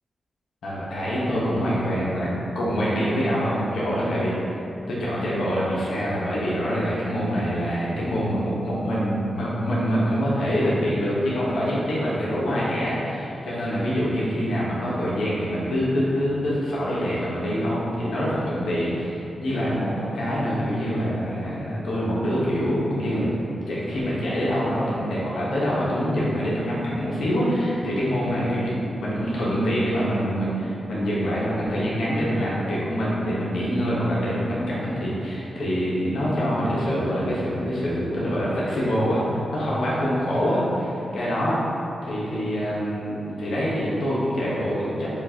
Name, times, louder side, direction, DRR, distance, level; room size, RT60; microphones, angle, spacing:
voice 1, 0.6-4.3 4.9-23.3 23.7-41.6 42.0-45.1, equal, 80° left, -8 dB, 1.1 m, -25 dB
7.2 x 2.5 x 2.9 m, 2.8 s
cardioid pair, 50°, 0 cm